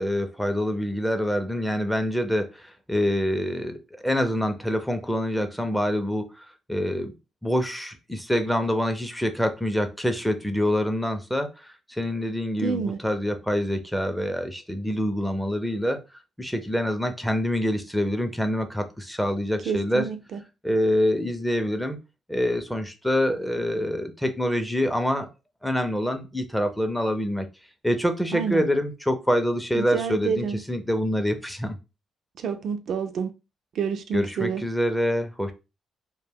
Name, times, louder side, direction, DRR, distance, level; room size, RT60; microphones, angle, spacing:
voice 1, 0.0-7.1 7.4-16.0 16.4-20.0 20.6-22.0 22.3-25.3 25.6-27.5 27.8-31.8 34.1-35.5, equal, 5° left, 0.5 m, -26 dB
voice 2, 12.6-13.0 19.7-20.4 28.3-28.6 29.7-30.6 32.4-33.3 33.7-34.6, right 6 dB, 65° right, 0.4 m, -28 dB
2.1 x 2.1 x 3.4 m
cardioid pair, 90°, 0 cm